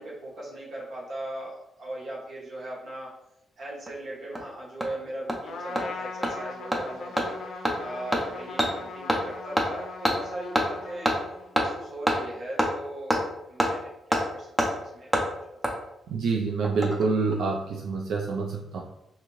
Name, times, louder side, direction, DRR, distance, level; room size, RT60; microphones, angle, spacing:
voice 1, 0.0-3.1 3.6-7.4 7.8-11.1 11.5-13.2 13.5-15.2 15.6-15.8, right 1 dB, 55° right, -5 dB, 1.0 m, -39 dB
Hammer, 3.9-4.0 4.4-4.5 4.8-4.9 5.3-5.4 5.8-5.9 6.2-6.3 6.7-6.8 7.2-7.3 7.6-7.7 8.1-8.2 8.6-8.7 9.1-9.2 9.6-9.7 10.0-10.2 10.6-10.7 11.1-11.2 11.6-11.7 12.1-12.2 12.6-12.7 13.1-13.2 13.6-13.7 14.1-14.2 14.6-14.7 15.1-15.2 15.6-15.7 16.6-17.1 17.3-17.4, equal, 5° right, 0.4 m, -24 dB
Trumpet, 5.4-11.6, left 3 dB, 65° left, 0.4 m, -40 dB
voice 2, 16.1-18.8, right 4 dB, 90° right, -1 dB, 0.3 m, -27 dB
2.6 x 2.5 x 3.0 m, 0.83 s
wide cardioid pair, 150°, 0 cm